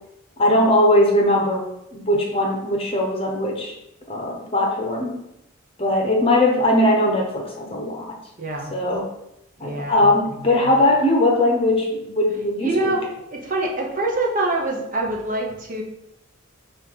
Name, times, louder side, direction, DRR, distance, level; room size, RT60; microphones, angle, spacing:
voice 1, 0.4-3.7 4.1-5.2 5.8-8.2 8.7-9.1 9.6-13.0, left 1 dB, 25° left, 1 dB, 0.9 m, -20 dB
voice 2, 8.4-8.7 9.6-10.0 10.4-10.7 12.6-13.0 13.3-15.8, right 2 dB, 35° right, 0 dB, 0.9 m, -25 dB
6.9 x 2.6 x 5.6 m, 0.83 s
head